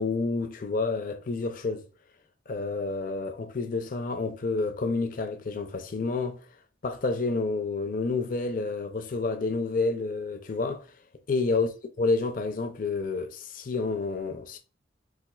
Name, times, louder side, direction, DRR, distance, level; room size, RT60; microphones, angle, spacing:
voice 1, 0.0-1.9 2.5-6.4 6.8-10.9 11.3-11.7 12.0-14.6, left 3 dB, 50° left, 0.5 m, -29 dB
4.2 x 2.4 x 2.2 m
head